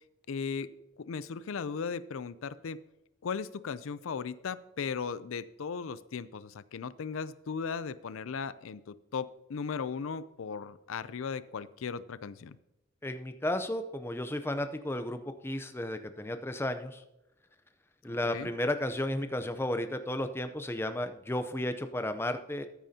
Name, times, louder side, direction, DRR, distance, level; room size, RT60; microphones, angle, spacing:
voice 1, 0.3-0.7 1.0-2.8 3.2-12.6 18.2-18.5, left 5 dB, 85° left, 16 dB, 0.5 m, -37 dB
voice 2, 13.0-17.0 18.0-22.7, left 1 dB, 10° left, 8 dB, 0.6 m, -33 dB
14.0 x 9.0 x 2.8 m, 0.90 s
head